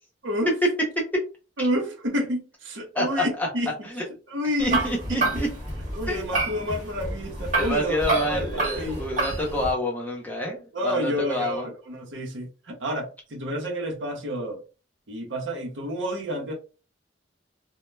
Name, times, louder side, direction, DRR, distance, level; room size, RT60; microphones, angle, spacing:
voice 1, 0.2-0.6 1.6-3.7 4.3-4.8 5.1-5.2 6.0-8.0 8.3-9.0 10.7-14.6 15.1-16.5, equal, 75° right, 0.8 m, -29 dB
voice 2, 2.9-3.5 3.8-4.0 4.6-5.5 6.1-6.3 7.6-11.7, left 1 dB, 10° left, 0.7 m, -28 dB
sound 1, 4.6-9.7, right 2 dB, 40° right, 1.0 m, -28 dB
2.1 x 2.1 x 3.1 m
head